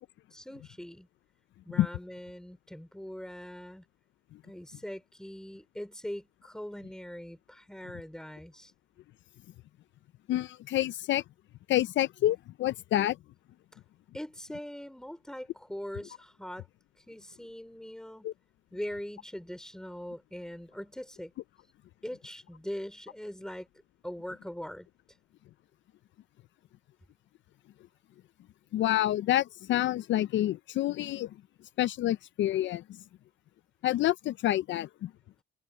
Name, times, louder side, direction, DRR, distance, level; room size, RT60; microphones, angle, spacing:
voice 1, 0.3-1.1 1.6-3.8 4.4-8.7 13.7-13.8 14.1-16.7 17.1-18.3 18.7-21.3 22.0-23.7 24.0-24.9, equal, 5° left, 3.4 m, -41 dB
voice 2, 10.3-11.2 11.7-13.2 18.2-18.3 28.7-31.3 31.8-33.0 33.8-35.1, left 13 dB, 70° left, 0.5 m, -28 dB
cardioid pair, 90°, 20 cm